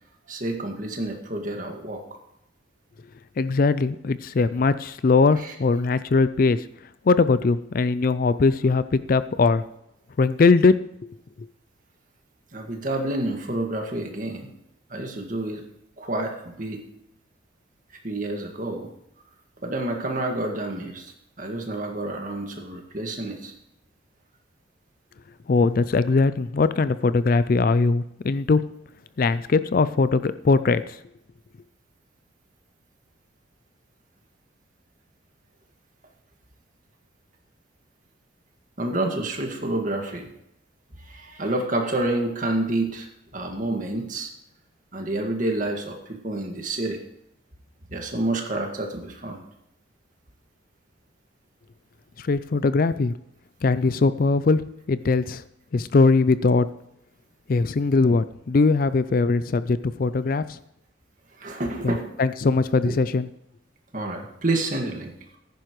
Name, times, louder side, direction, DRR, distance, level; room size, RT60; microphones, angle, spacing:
voice 1, 0.3-2.2 5.4-5.5 12.5-14.5 14.9-15.6 16.0-16.8 18.0-18.9 19.6-21.1 21.4-23.5 38.8-40.3 41.0-43.1 43.3-44.3 44.9-47.0 47.9-49.4 61.4-62.1 62.8-63.0 63.9-65.1, right 2 dB, 40° right, 2 dB, 1.8 m, -28 dB
voice 2, 3.4-6.7 7.1-9.6 10.2-10.7 11.4-11.5 25.5-28.6 29.2-30.8 52.2-53.1 53.6-54.6 54.9-55.4 55.7-56.7 57.5-60.6 61.8-61.9 62.2-63.3, left 4 dB, 45° left, 14 dB, 0.4 m, -20 dB
15.0 x 10.5 x 3.1 m, 0.79 s
head